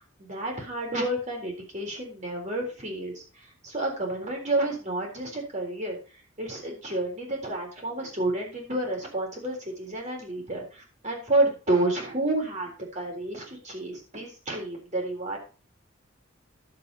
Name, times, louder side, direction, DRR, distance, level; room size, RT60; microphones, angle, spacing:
voice 1, 0.0-6.0 6.4-15.4, right 2 dB, 35° right, 0 dB, 3.7 m, -30 dB
11.5 x 7.5 x 4.1 m, 0.35 s
head